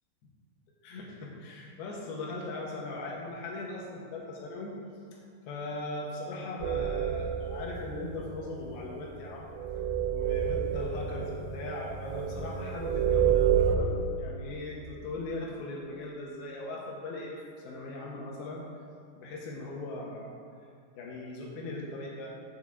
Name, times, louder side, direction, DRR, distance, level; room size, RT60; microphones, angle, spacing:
voice 1, 0.8-4.7 5.1-5.2 5.5-9.5 10.1-17.4 17.6-18.6 19.2-20.3 21.0-22.3, left 2 dB, 90° left, -2 dB, 3.2 m, -39 dB
sound 1, 6.6-13.8, right 8 dB, 85° right, 2.6 m, -29 dB
7.3 x 6.3 x 7.3 m, 2.4 s
omnidirectional pair, 4.3 m